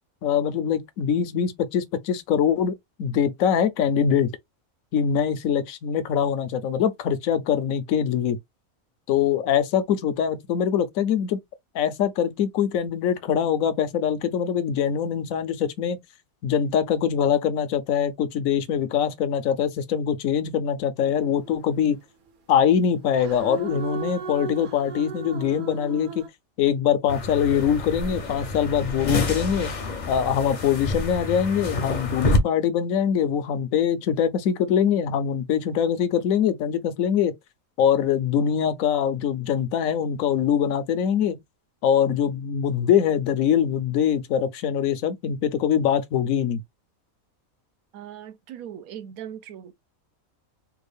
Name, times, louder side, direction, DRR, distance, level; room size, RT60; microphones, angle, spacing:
voice 1, 0.2-2.7 3.0-4.3 4.9-8.4 9.1-11.4 11.7-16.0 16.4-22.0 22.5-26.2 26.6-29.7 30.1-37.3 37.8-41.4 41.8-46.6, left 8 dB, 75° left, 1.1 m, -23 dB
sound 1, 21.0-21.7 23.1-26.3, right 5 dB, 55° right, 0.6 m, -36 dB
sound 2, 27.1-32.4, left 2 dB, 40° left, 0.7 m, -28 dB
voice 2, 47.9-49.7, right 10 dB, 85° right, 1.1 m, -39 dB
3.5 x 2.3 x 3.3 m
omnidirectional pair, 1.5 m